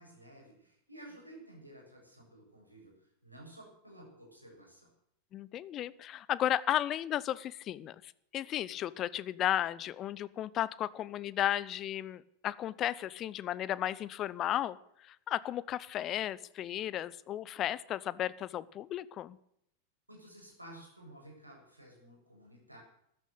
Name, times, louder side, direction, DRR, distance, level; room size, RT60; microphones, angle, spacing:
voice 1, 0.0-4.9 20.1-22.8, right 1 dB, 85° right, -1 dB, 7.5 m, -53 dB
voice 2, 5.3-14.8 15.0-19.4, left 12 dB, 30° left, 19 dB, 0.8 m, -34 dB
14.0 x 12.5 x 8.2 m, 0.73 s
figure-of-eight pair, 90°, 0 cm